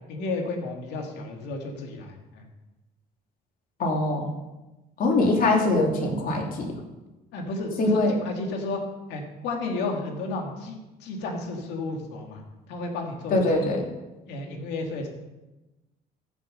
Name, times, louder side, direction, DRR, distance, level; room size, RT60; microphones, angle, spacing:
voice 1, 0.1-2.4 7.3-8.8 9.1-12.4 12.7-13.8 14.3-15.1, left 2 dB, 85° left, 2 dB, 2.4 m, -32 dB
voice 2, 3.8-4.3 5.0-6.7 7.8-8.1 13.3-13.8, left 2 dB, 55° left, 1 dB, 3.0 m, -22 dB
14.5 x 7.1 x 5.5 m, 1.1 s
cardioid pair, 110°, 17 cm